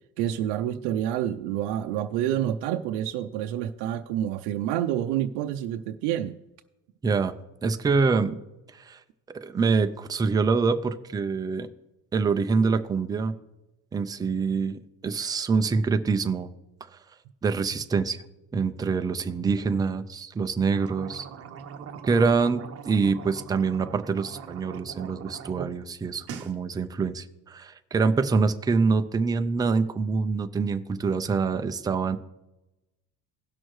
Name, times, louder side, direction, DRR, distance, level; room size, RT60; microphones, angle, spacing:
voice 1, 0.2-6.4, right 11 dB, 85° right, 6 dB, 0.6 m, -28 dB
voice 2, 7.0-7.3 7.6-8.4 8.7-9.0 9.3-11.7 12.1-13.3 13.9-16.5 16.8-17.0 17.4-18.2 18.5-21.3 22.0-32.2, right 4 dB, 10° right, 8 dB, 0.3 m, -25 dB
sound 1, 20.6-25.7 26.0-26.5, right 7 dB, 35° right, 0.8 m, -41 dB
17.5 x 6.3 x 3.1 m, 0.98 s
cardioid pair, 145°, 40 cm